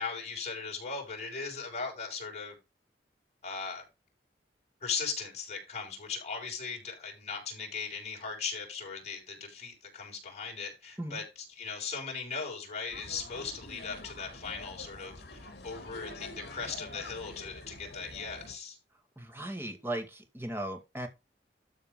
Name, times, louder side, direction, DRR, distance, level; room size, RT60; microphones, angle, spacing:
voice 1, 0.0-2.6 3.4-3.9 4.8-11.2 11.5-18.8, left 5 dB, 40° left, 5.9 m, -38 dB
sound 1, 12.9-18.5, left 2 dB, 60° left, 3.0 m, -46 dB
voice 2, 19.2-21.1, right 1 dB, 15° right, 2.0 m, -37 dB
13.0 x 4.3 x 5.2 m
head